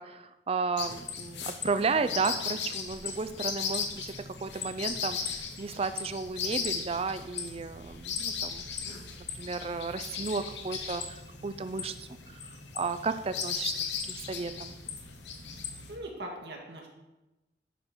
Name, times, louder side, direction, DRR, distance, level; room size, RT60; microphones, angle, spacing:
voice 1, 0.0-12.5 12.7-13.7 14.1-14.7, right 4 dB, 35° right, 11 dB, 0.4 m, -33 dB
sound 1, 0.8-16.0, left 6 dB, 80° left, 1.0 m, -37 dB
voice 2, 15.9-16.9, right 1 dB, 70° right, 0 dB, 1.7 m, -40 dB
10.5 x 3.8 x 6.2 m, 1.0 s
head